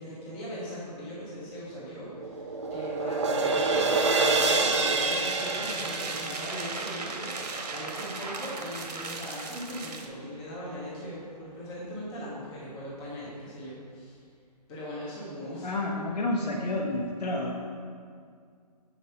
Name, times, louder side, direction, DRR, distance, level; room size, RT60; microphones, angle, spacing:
voice 1, 0.0-14.2 14.7-15.7, equal, 5° left, -8 dB, 0.6 m, -40 dB
sound 1, 1.7-8.0, right 3 dB, 45° right, 0.8 m, -28 dB
sound 2, 4.4-10.1, right 3 dB, 70° right, 1.1 m, -38 dB
voice 2, 15.6-17.7, left 2 dB, 75° left, -3 dB, 1.1 m, -30 dB
7.1 x 4.3 x 6.7 m, 2.1 s
hypercardioid pair, 175°, 21 cm